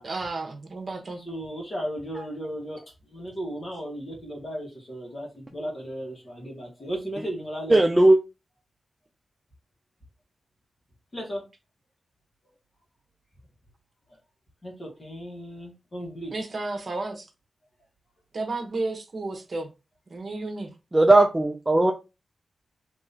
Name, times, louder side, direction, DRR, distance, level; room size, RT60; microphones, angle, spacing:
voice 1, 0.0-1.2 16.3-17.3 18.3-19.7 20.1-20.7, right 3 dB, 50° right, 1.0 m, -32 dB
voice 2, 1.2-7.8 11.1-11.4 14.6-16.3, equal, 40° left, 1.5 m, -35 dB
voice 3, 7.7-8.2 20.9-21.9, right 2 dB, 15° right, 0.4 m, -17 dB
3.7 x 2.9 x 2.8 m
wide cardioid pair, 110°, 0 cm